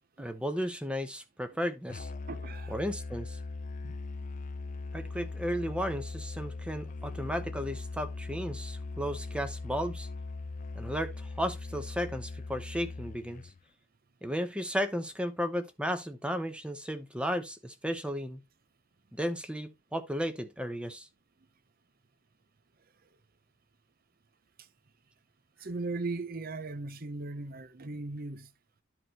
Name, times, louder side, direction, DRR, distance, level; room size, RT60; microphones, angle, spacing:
voice 1, 0.2-2.1 2.7-3.4 4.9-10.1 10.7-13.4 14.2-18.4 19.1-21.1, equal, 5° right, 0.9 m, -34 dB
Musical instrument, 1.9-13.6, left 3 dB, 40° left, 0.4 m, -40 dB
voice 2, 2.3-2.8 3.8-3.9 25.6-28.5, right 3 dB, 45° right, 0.8 m, -37 dB
12.5 x 4.8 x 2.9 m
head